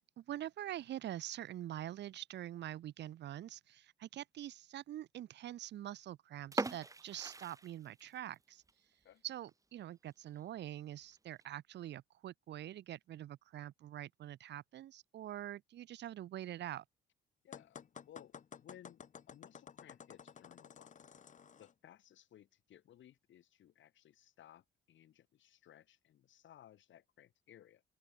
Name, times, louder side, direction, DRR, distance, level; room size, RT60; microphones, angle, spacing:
voice 1, 0.0-8.6 9.2-16.8, right 12 dB, 60° right, 0.6 m, -45 dB
sound 1, 6.4-8.4 8.7-8.8 9.3-9.5 9.9-10.0 10.3-10.4 11.1-11.4, right 3 dB, 15° right, 0.7 m, -41 dB
voice 2, 17.4-20.9 21.6-27.8, left 11 dB, 70° left, 5.0 m, -61 dB
sound 2, 17.5-21.7, left 7 dB, 40° left, 0.9 m, -53 dB
open air
cardioid pair, 90°, 20 cm